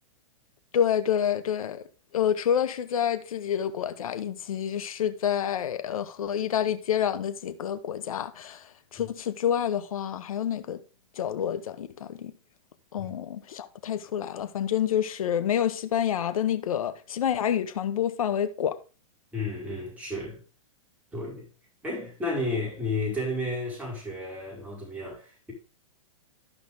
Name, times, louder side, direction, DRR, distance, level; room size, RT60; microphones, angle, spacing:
voice 1, 0.7-1.8 2.1-8.6 8.9-10.8 11.2-12.3 12.9-18.8, left 9 dB, 75° left, 1.3 m, -28 dB
voice 2, 19.3-20.4 21.1-21.5 21.8-25.5, left 2 dB, 10° right, 5.6 m, -32 dB
13.0 x 5.6 x 3.6 m
hypercardioid pair, 125°, 18 cm